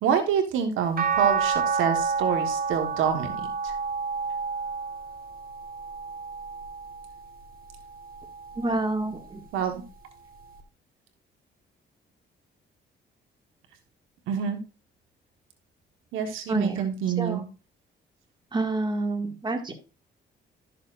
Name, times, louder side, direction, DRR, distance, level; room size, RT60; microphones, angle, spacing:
voice 1, 0.0-3.3 3.6-3.7 9.5-9.8 14.3-14.6 16.1-17.4, right 7 dB, 90° right, 6 dB, 1.4 m, -26 dB
sound 1, 1.0-7.3 7.8-9.2 10.6-10.7, right 5 dB, 45° right, 1.6 m, -30 dB
voice 2, 8.6-9.4 16.5-16.9 17.2-17.4 18.5-19.7, right 2 dB, 20° right, 4 dB, 1.9 m, -28 dB
12.0 x 6.6 x 2.5 m, 0.32 s
cardioid pair, 90°, 20 cm